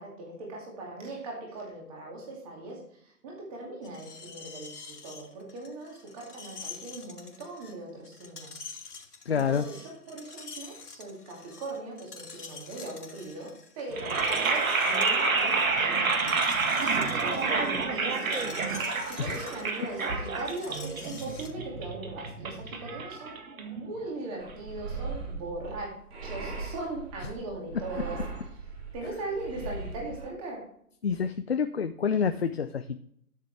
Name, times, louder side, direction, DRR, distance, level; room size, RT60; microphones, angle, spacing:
voice 1, 0.0-8.6 9.3-25.9 26.2-28.2 28.9-30.7, right 2 dB, 25° right, -2 dB, 2.4 m, -39 dB
Screech, 3.8-21.5, left 4 dB, 85° left, 2.6 m, -46 dB
voice 2, 9.3-9.7 19.2-19.4 31.0-33.0, left 6 dB, 45° left, 8 dB, 0.5 m, -28 dB
sound 1, 13.9-24.0, right 4 dB, 60° right, 1.9 m, -28 dB
sound 2, 24.4-30.3, right 3 dB, 40° right, 2.7 m, -39 dB
13.0 x 6.6 x 3.4 m, 0.67 s
hypercardioid pair, 160°, 46 cm